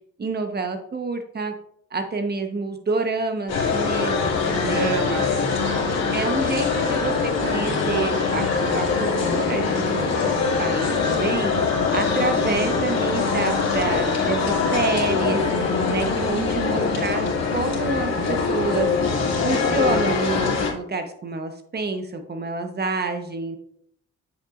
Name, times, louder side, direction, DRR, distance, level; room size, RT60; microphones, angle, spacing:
voice 1, 0.2-1.5 1.9-5.2 6.1-8.5 8.7-11.5 11.9-17.2 17.5-18.9 19.4-23.6, right 3 dB, 35° right, 6 dB, 1.2 m, -28 dB
sound 1, 3.5-20.7, left 4 dB, 60° left, 2.5 m, -23 dB
voice 2, 4.6-6.2 6.6-6.8 12.4-13.0, right 5 dB, 75° right, 7 dB, 1.2 m, -32 dB
8.1 x 6.9 x 2.6 m, 0.68 s
cardioid pair, 90°, 30 cm